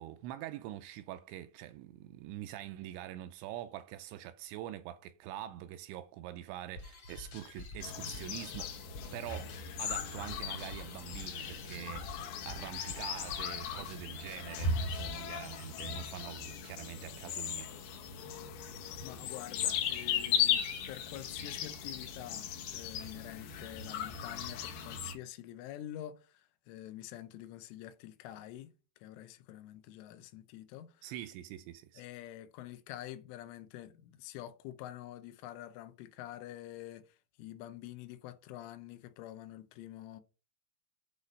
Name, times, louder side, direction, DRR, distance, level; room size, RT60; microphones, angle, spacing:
voice 1, 0.0-8.8 9.1-17.7 31.0-32.0, right 13 dB, 85° right, 2.7 m, -45 dB
sound 1, 6.8-15.5, left 3 dB, 55° left, 1.8 m, -49 dB
sound 2, 7.8-25.1, left 7 dB, 75° left, 2.5 m, -37 dB
voice 2, 19.0-28.7 29.0-31.1 32.0-40.2, left 13 dB, 90° left, 3.3 m, -47 dB
9.2 x 4.1 x 5.2 m
omnidirectional pair, 5.5 m